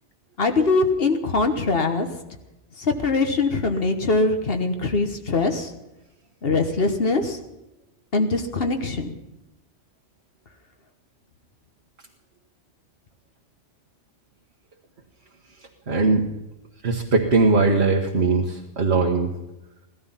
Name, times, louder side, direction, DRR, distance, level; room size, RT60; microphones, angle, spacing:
voice 1, 0.4-2.1 2.8-5.7 6.4-7.4 8.1-9.1, left 3 dB, 55° left, 6 dB, 1.4 m, -22 dB
voice 2, 15.9-16.2 16.8-19.3, right 3 dB, 60° right, -1 dB, 1.6 m, -20 dB
16.5 x 13.0 x 5.7 m, 0.95 s
omnidirectional pair, 1.2 m